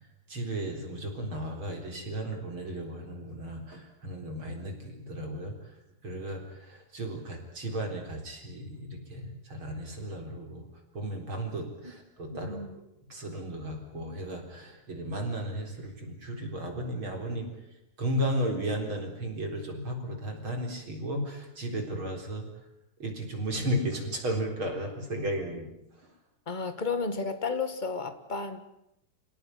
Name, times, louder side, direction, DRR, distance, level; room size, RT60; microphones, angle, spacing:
voice 1, 0.3-5.5 6.0-10.6 10.9-12.6 13.1-17.5 18.0-22.5 23.0-25.7, right 1 dB, 40° right, 3 dB, 4.7 m, -34 dB
voice 2, 12.3-12.8 26.5-28.6, left 4 dB, 20° left, 10 dB, 1.3 m, -32 dB
28.0 x 18.0 x 9.7 m, 0.83 s
omnidirectional pair, 3.5 m